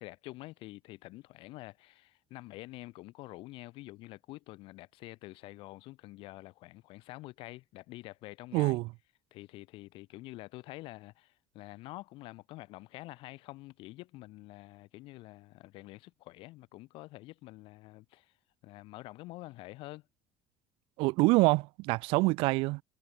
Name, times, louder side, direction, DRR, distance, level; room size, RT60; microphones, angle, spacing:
voice 1, 0.0-8.8 9.3-18.3 18.6-20.0, left 19 dB, 75° left, 6.7 m, -47 dB
voice 2, 8.5-8.9 21.0-22.8, right 23 dB, 80° right, 0.6 m, -26 dB
cardioid pair, 110°, 9 cm